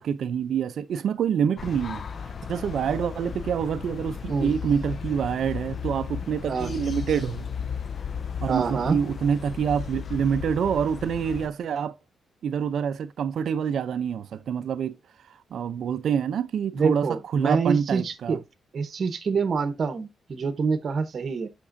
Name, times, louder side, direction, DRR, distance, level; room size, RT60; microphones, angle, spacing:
voice 1, 0.0-2.0 2.5-7.5 8.4-11.9 12.4-15.0 15.3-18.4, right 7 dB, 65° right, 0.5 m, -26 dB
sound 1, 1.6-11.5, left 6 dB, 40° left, 0.4 m, -35 dB
voice 2, 8.5-9.0 16.7-18.4 18.7-21.5, right 5 dB, 45° right, 0.9 m, -26 dB
8.5 x 6.0 x 2.6 m
wide cardioid pair, 165°, 0 cm